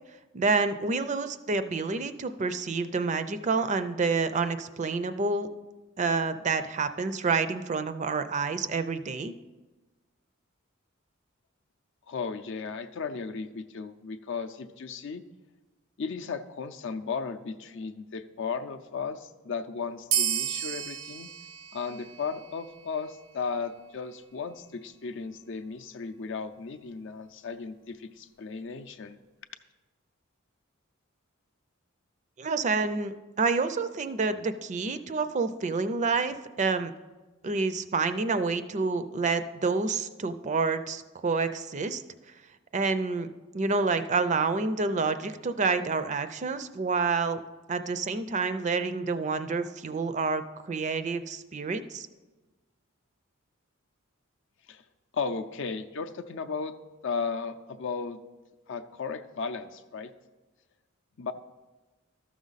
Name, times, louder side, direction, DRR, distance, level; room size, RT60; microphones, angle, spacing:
voice 1, 0.3-5.5 6.0-9.3 32.4-36.9 37.4-42.0 42.7-43.3 43.5-47.4 47.7-52.1, right 4 dB, 35° right, 11 dB, 0.4 m, -28 dB
voice 2, 12.1-15.2 16.0-21.3 21.7-29.2 54.7-54.8 55.1-56.7 57.0-58.2 58.7-60.1 61.2-61.3, left 5 dB, 60° left, 9 dB, 0.5 m, -35 dB
sound 1, 20.1-23.1, right 10 dB, 90° right, 0.6 m, -32 dB
13.0 x 6.2 x 4.0 m, 1.2 s
head